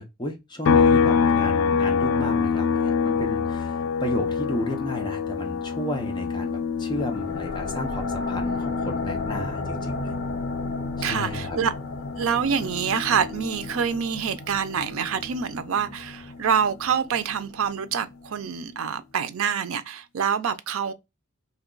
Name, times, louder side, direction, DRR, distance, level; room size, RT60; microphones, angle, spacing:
voice 1, 0.0-10.2 11.0-11.6, equal, 20° left, 0.6 m, -33 dB
sound 1, 0.6-14.2 14.5-16.7, left 6 dB, 80° left, 0.3 m, -26 dB
sound 2, 7.0-18.3, left 2 dB, 55° left, 0.9 m, -35 dB
voice 2, 11.0-11.7 12.2-20.9, right 7 dB, 80° right, 0.4 m, -26 dB
2.9 x 2.2 x 3.7 m
head